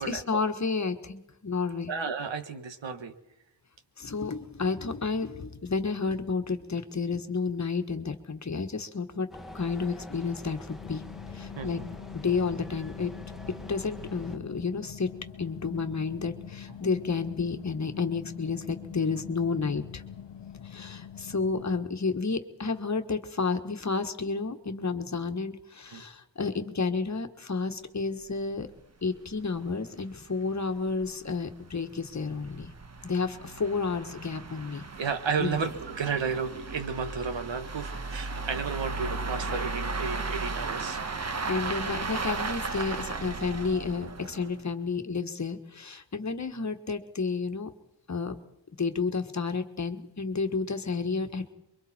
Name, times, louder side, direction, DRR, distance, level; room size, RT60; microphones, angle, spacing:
voice 1, 0.0-1.9 4.0-9.3 9.5-11.0 11.3-11.8 12.1-13.2 13.7-15.1 15.4-20.0 20.6-28.7 29.0-32.7 33.0-34.9 35.4-35.6 41.5-47.7 48.1-48.3 48.8-51.5, left 4 dB, 40° left, 7 dB, 1.5 m, -31 dB
voice 2, 1.9-3.1 11.6-11.9 25.9-26.0 34.9-41.0, right 5 dB, 85° right, 8 dB, 1.8 m, -32 dB
sound 1, 9.3-14.4, left 1 dB, ahead, 1.5 m, -45 dB
sound 2, 10.8-21.8, left 9 dB, 70° left, 0.8 m, -44 dB
sound 3, 28.3-28.4 28.6-28.7 29.2-29.3 29.6-29.7 30.3-44.7, right 3 dB, 35° right, 1.2 m, -36 dB
28.0 x 23.5 x 4.4 m, 0.88 s
wide cardioid pair, 135°, 44 cm